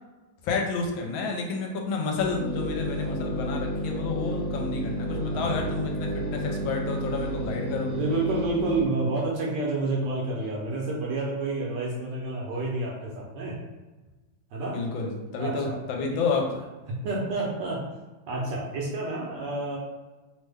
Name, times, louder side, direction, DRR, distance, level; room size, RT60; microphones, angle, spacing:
voice 1, 0.4-7.9 14.7-16.5, left 4 dB, 80° left, 1 dB, 1.3 m, -30 dB
sound 1, 2.2-8.8, equal, 10° left, 0.5 m, -31 dB
voice 2, 5.3-5.8 8.0-13.6 14.5-14.8 15.4-16.2 16.5-16.6 17.0-17.9 18.3-19.8, right 2 dB, 70° right, -3 dB, 1.1 m, -29 dB
3.3 x 2.1 x 3.3 m, 1.2 s
omnidirectional pair, 2.2 m